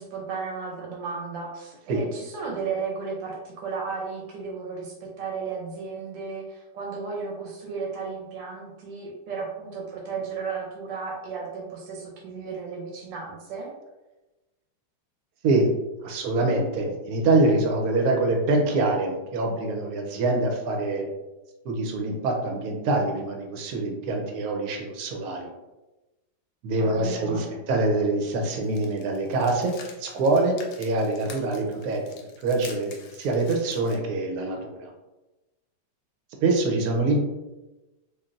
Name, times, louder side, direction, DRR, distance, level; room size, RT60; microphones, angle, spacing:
voice 1, 0.0-13.7 26.7-27.6, right 5 dB, 85° right, -2 dB, 1.3 m, -34 dB
voice 2, 16.0-21.1 21.6-25.5 26.6-29.7 30.0-32.0 32.4-34.9 36.4-37.2, right 2 dB, 70° right, 1 dB, 0.9 m, -25 dB
sound 1, 28.6-34.0, left 5 dB, 90° left, 1.3 m, -46 dB
3.2 x 2.4 x 2.4 m, 1.1 s
omnidirectional pair, 2.0 m